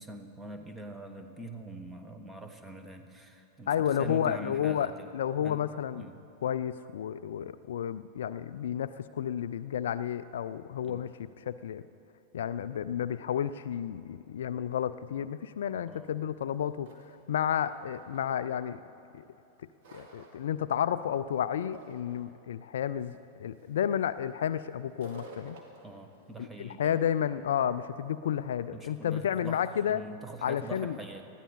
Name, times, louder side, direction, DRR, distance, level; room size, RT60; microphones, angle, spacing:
voice 1, 0.0-5.1 5.4-5.6 5.9-6.2 10.8-11.0 15.9-16.2 25.8-27.0 28.7-29.6 29.9-31.3, right 2 dB, 10° right, 6 dB, 1.3 m, -44 dB
voice 2, 3.7-6.1 6.4-11.1 11.5-11.8 12.3-16.9 17.3-18.8 19.9-25.6 26.4-30.0 30.4-31.0, left 9 dB, 60° left, 14 dB, 0.4 m, -31 dB
sound 1, 16.5-16.6 16.8-18.6 19.2-20.5 20.9-21.3 21.5-22.3 23.0-23.1 23.5-23.8 24.9-26.5, right 3 dB, 50° right, 2.1 m, -51 dB
20.5 x 14.0 x 4.2 m, 2.9 s
figure-of-eight pair, 90°, 0 cm